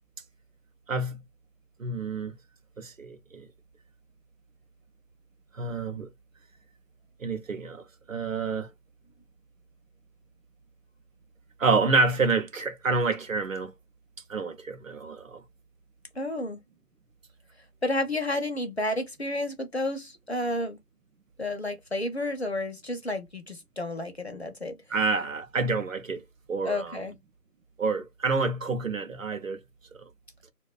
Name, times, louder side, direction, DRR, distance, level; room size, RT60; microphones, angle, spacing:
voice 1, 0.9-1.2 1.8-2.3 2.8-3.5 5.5-6.1 7.2-8.7 11.6-13.7 14.3-15.4 24.9-27.0 27.8-29.6, right 3 dB, 55° right, 0.5 m, -28 dB
voice 2, 16.1-16.6 17.8-20.8 21.4-24.8 26.6-27.1, left 1 dB, 45° left, 0.5 m, -31 dB
2.5 x 2.2 x 2.3 m
figure-of-eight pair, 170°, 48 cm